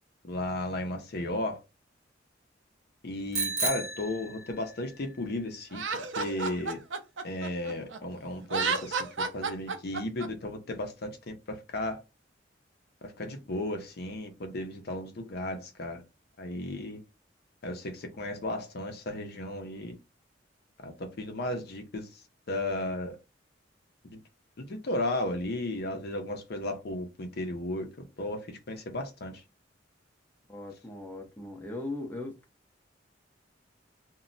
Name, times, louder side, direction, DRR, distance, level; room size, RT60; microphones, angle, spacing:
voice 1, 0.2-1.6 3.0-5.8 6.2-6.8 7.2-12.0 13.0-16.0 16.4-17.0 17.6-20.0 20.8-22.2 22.5-23.2 24.1-24.2 24.6-27.9 28.2-29.4, left 1 dB, 55° left, 0.6 m, -34 dB
Bicycle bell, 3.3-4.9, right 3 dB, 60° right, 0.9 m, -33 dB
Laughter, 5.7-8.0 8.4-10.3, right 4 dB, 75° right, 0.5 m, -31 dB
voice 2, 30.5-32.4, left 2 dB, 10° left, 0.6 m, -38 dB
2.2 x 2.0 x 3.8 m
head